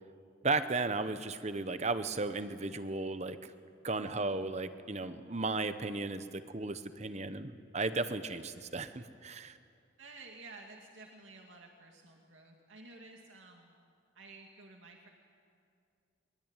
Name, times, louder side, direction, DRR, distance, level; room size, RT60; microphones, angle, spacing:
voice 1, 0.4-3.4 3.8-9.5, right 3 dB, 35° right, 11 dB, 1.0 m, -35 dB
voice 2, 4.1-4.5 10.0-13.8 14.1-15.1, right 3 dB, 90° right, 1 dB, 2.4 m, -53 dB
23.0 x 22.5 x 9.0 m, 2.4 s
head